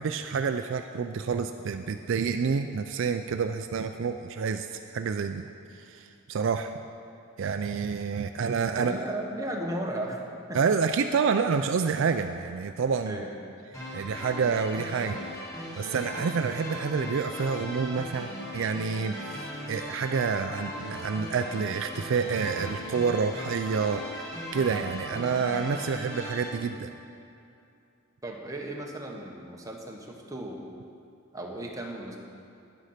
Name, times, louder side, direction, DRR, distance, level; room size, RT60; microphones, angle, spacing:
voice 1, 0.0-4.7 4.9-5.4 5.9-6.7 7.4-9.0 10.5-13.2 13.9-15.2 15.6-18.3 18.5-26.9, right 5 dB, 60° right, 7 dB, 0.4 m, -28 dB
voice 2, 8.7-10.2 10.5-10.6 13.1-13.3 28.2-30.6 31.3-32.2, right 1 dB, 15° right, -1 dB, 1.1 m, -35 dB
sound 1, 13.7-26.5, left 1 dB, 15° left, 2.4 m, -38 dB
10.5 x 8.2 x 5.7 m, 2.6 s
head